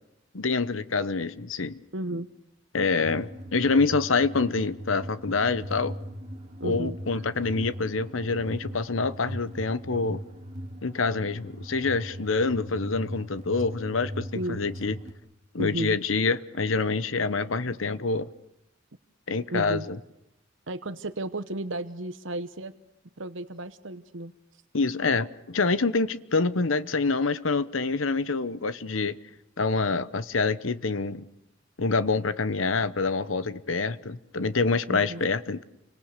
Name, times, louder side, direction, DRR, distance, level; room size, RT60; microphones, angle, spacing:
voice 1, 0.3-1.8 2.7-5.9 6.6-10.2 10.8-14.9 15.5-18.3 19.3-20.0 24.7-29.2 29.6-31.3 31.8-35.6, left 4 dB, 85° left, 1.1 m, -26 dB
voice 2, 1.9-2.3 6.6-7.2 14.3-14.6 15.6-16.0 19.5-19.9 20.7-22.7 23.2-24.3 34.9-35.2, right 1 dB, 70° right, 1.1 m, -34 dB
sound 1, 3.0-15.1, equal, 35° right, 2.8 m, -39 dB
30.0 x 25.5 x 6.7 m
head